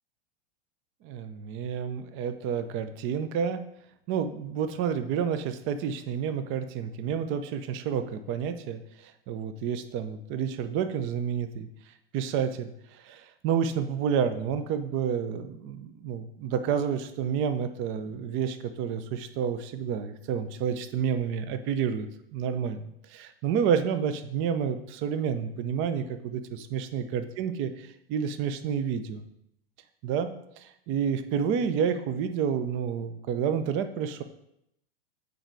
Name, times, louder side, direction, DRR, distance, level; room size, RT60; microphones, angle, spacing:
voice 1, 1.0-3.6 4.1-11.7 12.1-29.2 30.0-34.2, right 7 dB, 45° right, 10 dB, 0.7 m, -30 dB
8.6 x 4.1 x 4.8 m, 0.78 s
hypercardioid pair, 110°, 30 cm